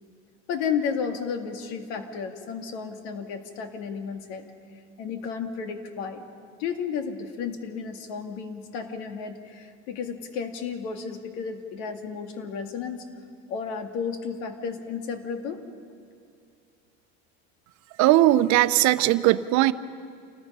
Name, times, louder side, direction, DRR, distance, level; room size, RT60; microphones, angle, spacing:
voice 1, 0.5-4.5 5.0-6.2 6.6-13.0 13.5-15.6, left 6 dB, 85° left, 6 dB, 2.2 m, -32 dB
voice 2, 18.0-19.7, right 15 dB, 60° right, 13 dB, 0.8 m, -19 dB
28.5 x 19.5 x 5.5 m, 2.4 s
cardioid pair, 140°, 32 cm